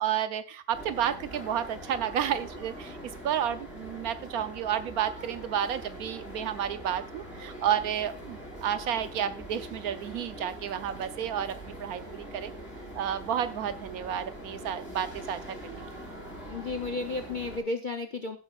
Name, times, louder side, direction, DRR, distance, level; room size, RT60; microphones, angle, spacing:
voice 1, 0.0-3.0 3.2-12.5 12.9-15.8, right 9 dB, 70° right, 12 dB, 1.0 m, -31 dB
sound 1, 0.7-17.6, right 1 dB, 5° left, 4.5 m, -43 dB
voice 2, 16.4-18.4, left 3 dB, 55° left, 6 dB, 0.5 m, -33 dB
15.0 x 7.7 x 2.4 m, 0.34 s
omnidirectional pair, 1.8 m